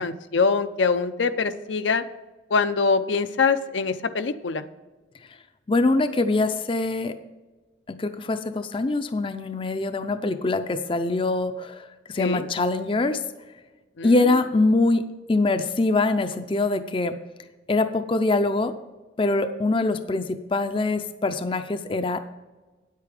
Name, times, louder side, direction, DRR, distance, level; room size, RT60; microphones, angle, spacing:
voice 1, 0.0-2.0 2.5-4.6 12.2-12.5 14.0-14.1, left 4 dB, 80° left, 10 dB, 0.6 m, -23 dB
voice 2, 5.7-7.1 7.9-11.9 12.1-13.2 14.0-15.0 15.3-17.1 17.7-18.7 19.2-22.2, left 2 dB, 30° left, 9 dB, 0.5 m, -23 dB
9.4 x 8.4 x 4.9 m, 1.2 s
head